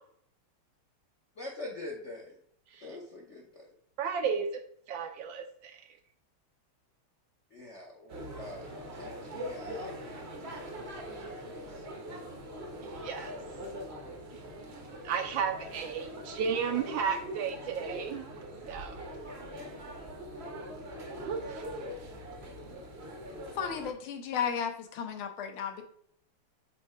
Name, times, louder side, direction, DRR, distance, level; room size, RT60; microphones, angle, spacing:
voice 1, 1.4-2.3 2.8-3.7 7.5-8.7 8.9-10.0 10.4-10.6 10.8-11.4 11.8-11.9, left 2 dB, 55° left, -1 dB, 0.8 m, -45 dB
voice 2, 4.0-4.5 4.9-5.8 13.0-13.3 15.0-18.2 18.7-19.0 21.2-21.6, right 6 dB, 75° right, 6 dB, 1.2 m, -33 dB
sound 1, 8.1-23.9, equal, 50° right, 0.7 m, -42 dB
voice 3, 23.6-25.8, left 7 dB, 75° left, 5 dB, 1.6 m, -34 dB
7.4 x 2.7 x 4.7 m, 0.65 s
omnidirectional pair, 2.4 m